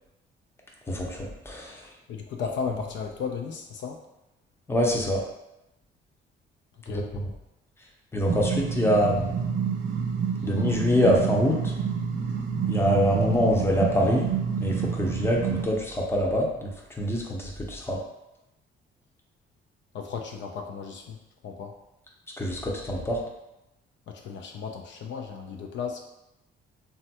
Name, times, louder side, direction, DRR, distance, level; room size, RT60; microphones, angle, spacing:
voice 1, 0.9-1.8 4.7-5.2 8.1-9.3 10.4-11.7 12.7-14.3 14.6-16.7 17.0-18.0 22.4-23.2, equal, 10° left, -1 dB, 0.6 m, -24 dB
voice 2, 2.1-4.0 6.9-7.1 10.4-10.5 19.9-21.2 21.4-21.8 24.1-26.0, left 6 dB, 70° left, 2 dB, 0.4 m, -35 dB
sound 1, 8.3-15.6, right 7 dB, 75° right, 0.5 m, -28 dB
3.2 x 2.3 x 2.8 m, 0.90 s
cardioid pair, 90°, 20 cm